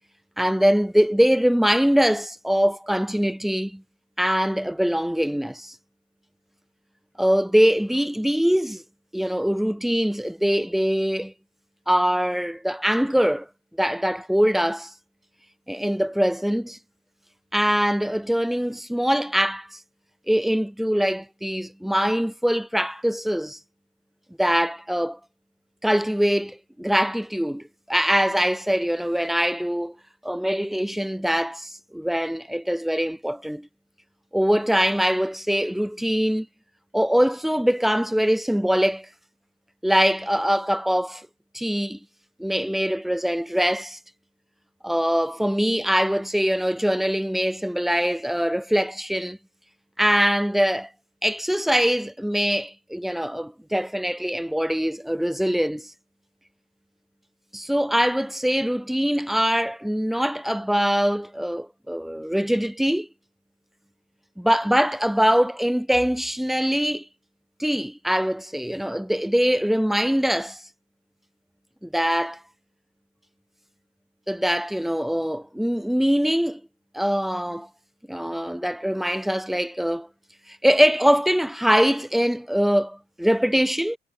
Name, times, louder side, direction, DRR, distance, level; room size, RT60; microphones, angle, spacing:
voice 1, 0.4-3.8 4.2-5.8 7.2-8.8 9.1-11.3 11.9-13.5 13.8-14.9 15.7-16.8 17.5-19.7 20.3-23.6 24.4-25.2 25.8-29.9 30.2-33.7 34.3-36.5 36.9-39.1 39.8-41.3 41.5-42.0 42.4-44.0 44.8-49.4 50.0-50.9 51.2-55.9 57.5-63.1 64.4-67.1 67.6-70.6 71.8-72.4 74.3-76.6 76.9-77.7 78.1-80.1 80.5-84.0, equal, ahead, 0.3 m, -23 dB
hypercardioid pair, 45°, 17 cm